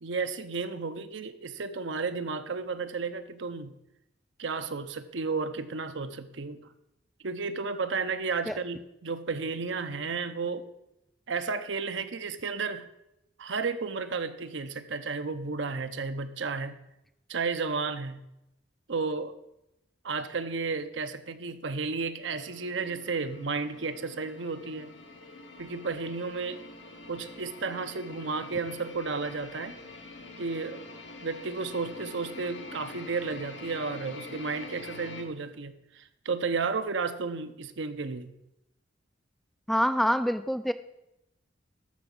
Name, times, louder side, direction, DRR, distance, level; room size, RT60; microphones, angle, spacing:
voice 1, 0.0-3.7 4.4-6.6 7.2-10.7 11.3-12.9 13.4-16.8 17.3-18.2 18.9-19.3 20.0-24.9 25.6-26.6 27.1-29.8 30.4-30.8 31.2-38.3, right 4 dB, 75° right, 9 dB, 0.8 m, -33 dB
sound 1, 22.2-35.2, left 3 dB, 75° left, 1.5 m, -46 dB
voice 2, 39.7-40.7, equal, ahead, 10 dB, 0.3 m, -25 dB
13.5 x 5.9 x 5.4 m, 0.87 s
head